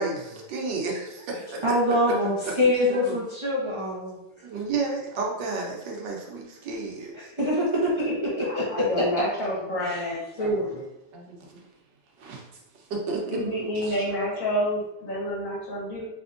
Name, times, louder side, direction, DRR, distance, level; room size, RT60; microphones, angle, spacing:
voice 1, 0.0-1.6 2.0-2.1 2.4-3.2 4.4-7.3 9.5-10.0 11.1-11.6 12.2-12.4 12.7-13.4 13.7-14.0, right 3 dB, 75° right, 0 dB, 1.4 m, -32 dB
voice 2, 1.6-4.2 7.1-9.1 9.8-10.9, left 1 dB, 50° right, -7 dB, 0.3 m, -25 dB
voice 3, 8.4-10.7 13.3-16.1, equal, 50° left, -4 dB, 1.5 m, -28 dB
4.5 x 3.4 x 2.5 m, 0.91 s
omnidirectional pair, 1.9 m